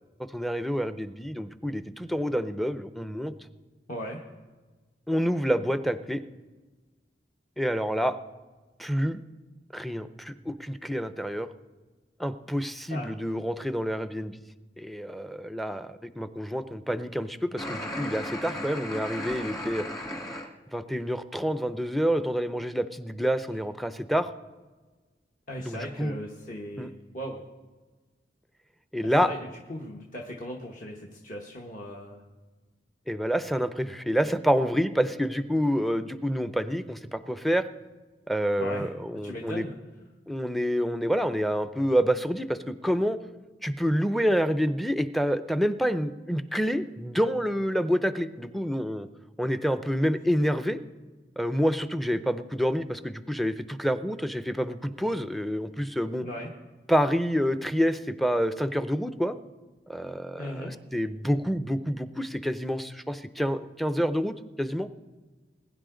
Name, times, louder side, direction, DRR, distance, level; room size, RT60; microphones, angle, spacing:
voice 1, 0.3-3.3 5.1-6.2 7.6-8.2 8.8-9.2 9.7-11.5 12.2-14.4 14.8-19.9 20.7-24.3 25.6-26.2 26.8-26.9 28.9-29.3 33.1-37.6 38.3-39.6 40.3-43.2 43.6-49.1 49.4-50.8 51.4-56.2 56.9-59.4 59.9-64.9, equal, ahead, 11 dB, 0.4 m, -28 dB
voice 2, 3.9-4.2 12.9-13.2 25.5-27.4 29.0-32.2 38.6-38.9 39.2-39.7 56.2-56.5 60.4-60.7, equal, 45° left, -1 dB, 1.2 m, -38 dB
sound 1, 17.6-20.5, left 1 dB, 20° left, 1.5 m, -35 dB
21.0 x 10.0 x 3.8 m, 1.3 s
head